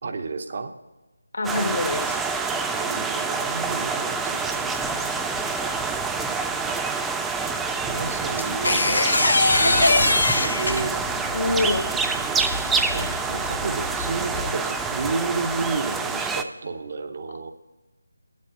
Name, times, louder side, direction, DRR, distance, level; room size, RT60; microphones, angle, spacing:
voice 1, 0.0-0.7 2.7-6.1 7.8-11.0 12.9-17.5, right 4 dB, 45° right, 6 dB, 0.8 m, -32 dB
voice 2, 1.3-2.2 11.3-11.9, left 2 dB, 60° left, 6 dB, 1.3 m, -25 dB
sound 1, 1.4-16.4, right 4 dB, 5° right, 0.3 m, -27 dB
sound 2, 5.9-6.4 8.5-8.6 9.1-14.5, left 2 dB, 20° left, 0.8 m, -37 dB
sound 3, 8.4-11.1 12.8-13.1, left 2 dB, 75° left, 1.0 m, -20 dB
8.2 x 7.5 x 5.6 m, 1.1 s
figure-of-eight pair, 165°, 0 cm